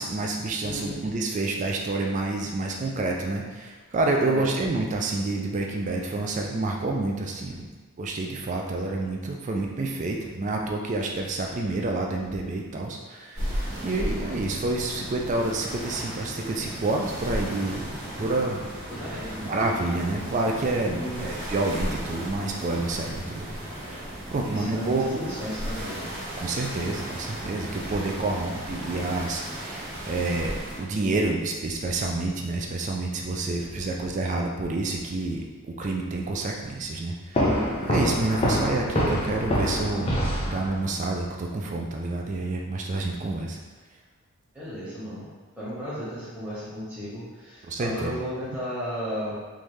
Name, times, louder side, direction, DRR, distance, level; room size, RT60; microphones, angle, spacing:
voice 1, 0.0-7.7 8.0-13.5 13.8-17.8 18.2-18.6 19.4-23.6 23.9-24.0 24.3-25.1 26.4-35.4 35.8-37.5 37.8-40.1 40.5-43.6 47.7-48.1, right 2 dB, 35° right, 1 dB, 0.3 m, -28 dB
voice 2, 0.6-1.0 4.2-4.5 18.9-19.6 20.9-21.2 24.4-26.1 33.6-33.9 44.5-45.3 45.6-49.3, equal, 5° right, -11 dB, 1.2 m, -34 dB
sound 1, 13.3-30.8, equal, 65° right, 1.3 m, -35 dB
sound 2, 37.3-41.0, equal, 25° left, 0.5 m, -25 dB
3.5 x 2.6 x 3.1 m, 1.3 s
head